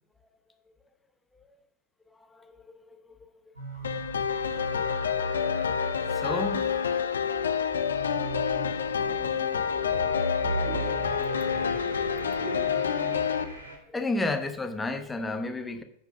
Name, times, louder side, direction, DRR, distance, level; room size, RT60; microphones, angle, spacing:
voice 1, 2.1-3.1 4.3-7.1 7.8-8.7 9.1-11.3 13.7-15.8, left 2 dB, 10° left, 1.0 m, -36 dB
sound 1, 3.6-13.8, right 2 dB, 80° right, 3.1 m, -38 dB
sound 2, 3.8-13.4, left 7 dB, 70° left, 0.6 m, -28 dB
10.5 x 4.7 x 6.7 m
figure-of-eight pair, 90°, 0 cm